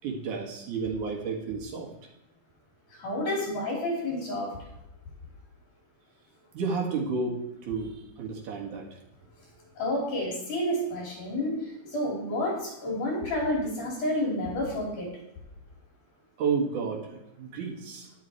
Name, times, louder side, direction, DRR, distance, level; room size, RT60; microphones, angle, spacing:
voice 1, 0.0-1.9 6.5-9.0 16.4-18.1, right 5 dB, 70° right, 0 dB, 3.1 m, -31 dB
voice 2, 3.0-4.5 9.8-15.1, left 1 dB, 70° left, -3 dB, 5.2 m, -30 dB
11.0 x 10.0 x 4.6 m, 0.86 s
omnidirectional pair, 3.7 m